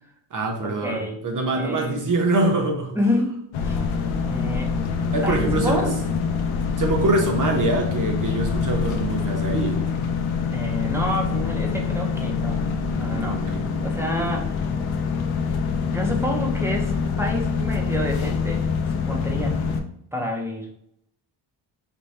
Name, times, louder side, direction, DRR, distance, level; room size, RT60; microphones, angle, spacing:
voice 1, 0.3-3.0 5.1-5.8 6.8-9.8 13.2-13.6, right 2 dB, 40° right, 2 dB, 0.8 m, -24 dB
voice 2, 0.8-1.2 1.5-2.0 2.9-3.8 4.3-4.7 5.2-6.0 10.5-12.6 13.0-13.5 13.8-14.6 15.9-18.7 18.9-19.7 20.1-20.7, left 1 dB, 5° right, 1 dB, 0.5 m, -28 dB
sound 1, 3.5-19.8, left 5 dB, 70° left, 0.6 m, -25 dB
4.3 x 2.2 x 3.1 m, 0.71 s
cardioid pair, 130°, 49 cm